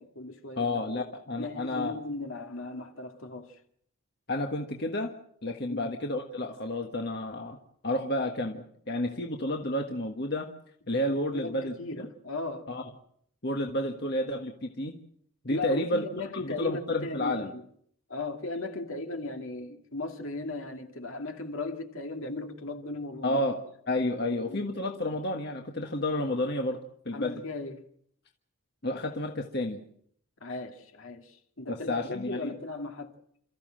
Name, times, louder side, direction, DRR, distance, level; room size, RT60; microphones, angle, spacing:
voice 1, 0.0-0.7 0.9-1.0 1.4-3.6 5.7-6.0 11.3-12.7 15.5-17.6 18.1-23.4 24.3-24.7 27.1-27.9 30.4-33.1, left 2 dB, 65° left, 2.4 m, -37 dB
voice 2, 0.6-1.9 4.3-5.1 5.4-7.6 7.8-10.5 10.9-12.1 12.7-12.8 13.4-14.9 15.4-16.0 16.4-17.5 23.2-23.6 23.9-26.8 27.0-27.4 28.8-29.8 31.7-32.5, left 1 dB, 45° left, 1.6 m, -31 dB
29.0 x 14.5 x 7.7 m
head